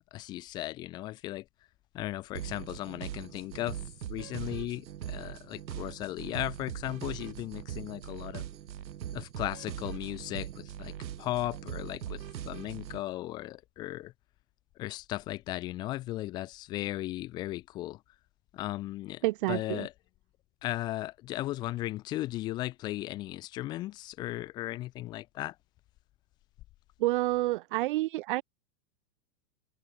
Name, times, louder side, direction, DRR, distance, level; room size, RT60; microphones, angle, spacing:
voice 1, 0.1-1.4 1.9-3.8 4.1-8.4 9.1-14.1 14.8-18.0 18.5-19.9 20.6-25.5, left 16 dB, 10° left, 0.6 m, -36 dB
sound 1, 2.3-13.0, right 10 dB, 90° right, 5.0 m, -41 dB
voice 2, 19.2-19.9 27.0-28.4, right 18 dB, 30° right, 1.0 m, -29 dB
supercardioid pair, 175°, 50 cm